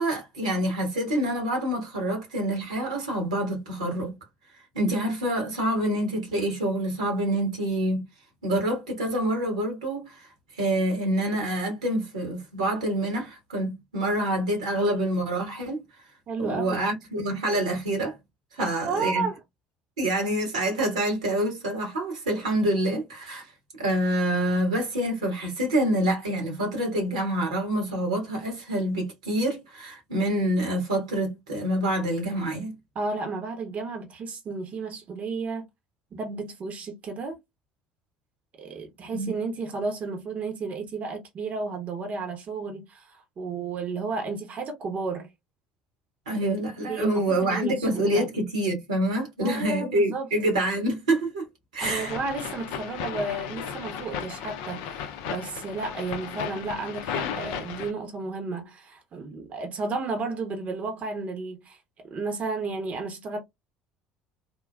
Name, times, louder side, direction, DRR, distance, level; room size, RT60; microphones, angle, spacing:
voice 1, 0.0-4.1 4.7-8.0 8.4-15.8 16.4-18.2 18.5-19.3 20.0-23.5 23.8-32.7 39.1-39.3 46.2-51.5 51.7-52.1, right 1 dB, 85° right, 1.4 m, -27 dB
voice 2, 16.3-16.8 18.6-19.4 32.9-35.7 36.1-37.4 38.6-45.3 46.9-48.3 49.4-50.3 51.8-63.4, right 3 dB, 40° right, 0.8 m, -32 dB
sound 1, 51.8-57.9, left 8 dB, 65° left, 0.5 m, -35 dB
3.6 x 2.2 x 2.2 m
hypercardioid pair, 60°, 4 cm